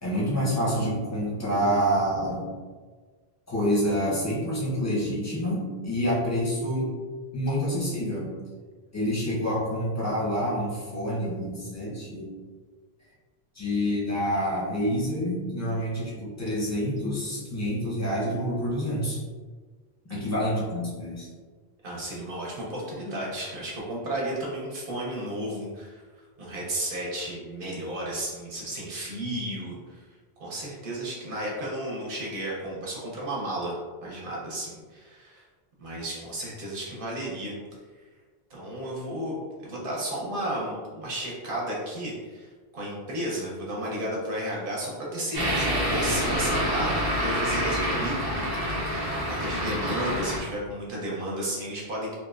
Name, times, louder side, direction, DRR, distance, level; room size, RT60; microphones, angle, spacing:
voice 1, 0.0-2.6 3.5-6.9 7.3-8.3 8.9-12.3 13.5-19.2 20.0-21.3, equal, 20° left, -6 dB, 0.5 m, -27 dB
voice 2, 21.8-26.0 26.4-30.1 30.4-33.8 34.0-35.4 35.8-37.5 38.5-39.3 39.6-48.9 49.2-52.1, right 1 dB, 60° right, -4 dB, 0.8 m, -33 dB
sound 1, 45.3-50.4, equal, 30° right, 0.4 m, -27 dB
2.8 x 2.0 x 2.3 m, 1.4 s
omnidirectional pair, 1.1 m